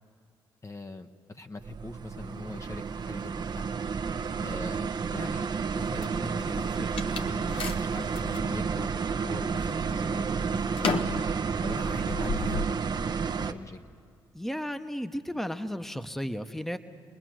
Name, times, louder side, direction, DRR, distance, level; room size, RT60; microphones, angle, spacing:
voice 1, 0.6-3.7 4.4-11.2 11.6-12.8 13.4-13.8, left 3 dB, 30° left, 6 dB, 1.0 m, -41 dB
sound 1, 1.6-13.5, right 5 dB, 45° right, 0.8 m, -31 dB
sound 2, 5.8-8.5 9.0-9.6 9.9-12.7, left 4 dB, 70° left, 1.1 m, -35 dB
sound 3, 6.0-6.7 8.1-8.6, left 2 dB, 90° left, 3.5 m, -57 dB
voice 2, 14.3-16.8, equal, 5° left, 9 dB, 1.0 m, -34 dB
28.0 x 20.0 x 6.4 m, 2.3 s
supercardioid pair, 55°, 10 cm